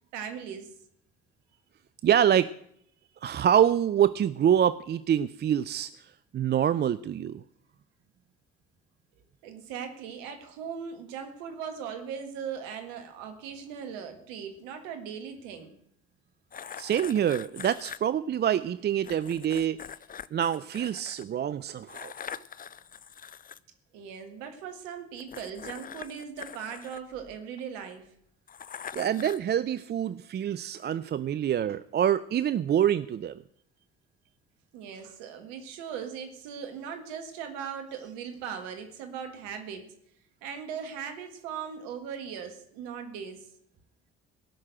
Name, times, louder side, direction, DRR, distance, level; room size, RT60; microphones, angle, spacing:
voice 1, 0.1-0.7 9.4-15.7 23.9-28.1 34.7-39.9 40.4-43.5, right 7 dB, 80° right, 7 dB, 1.7 m, -39 dB
voice 2, 2.0-2.5 3.2-7.4 16.8-19.8 20.3-22.1 28.9-33.4, right 9 dB, 35° right, 16 dB, 0.5 m, -26 dB
sound 1, 16.5-18.0 19.0-21.2 21.9-23.6 25.2-27.6 28.5-29.5, left 8 dB, 30° left, 0.5 m, -43 dB
17.0 x 6.5 x 7.7 m, 0.71 s
hypercardioid pair, 55°, 29 cm